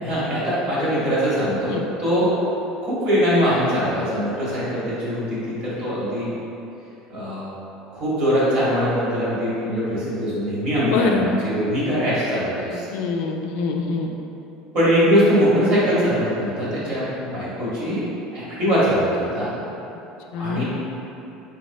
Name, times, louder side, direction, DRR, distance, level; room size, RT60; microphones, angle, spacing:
voice 1, 0.0-2.3 2.8-6.3 7.1-7.5 7.9-12.9 14.7-18.0 18.3-19.5 20.3-20.6, equal, 50° right, -9 dB, 1.4 m, -22 dB
voice 2, 10.8-11.3 12.9-14.1 20.3-20.6, left 4 dB, 70° left, 3 dB, 0.3 m, -24 dB
3.5 x 3.0 x 2.7 m, 2.9 s
cardioid pair, 135°, 2 cm